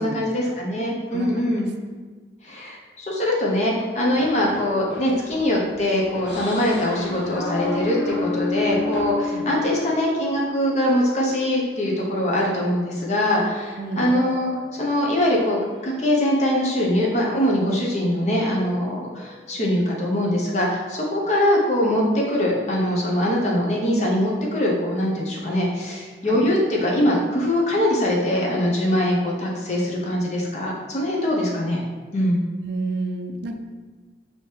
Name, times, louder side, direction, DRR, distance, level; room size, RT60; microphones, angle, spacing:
voice 1, 0.0-1.7 2.4-15.6 15.8-31.8 32.1-32.4, left 1 dB, 40° left, -3 dB, 0.8 m, -22 dB
voice 2, 1.1-1.5 9.3-9.5 13.8-14.1 26.2-26.4 32.6-33.6, right 3 dB, 75° right, 5 dB, 0.4 m, -30 dB
sound 1, 4.0-9.0, right 1 dB, 65° left, 1.3 m, -41 dB
sound 2, 6.3-12.2 12.6-16.9 17.1-19.7, left 3 dB, 80° left, 0.9 m, -33 dB
5.0 x 2.8 x 3.3 m, 1.4 s
head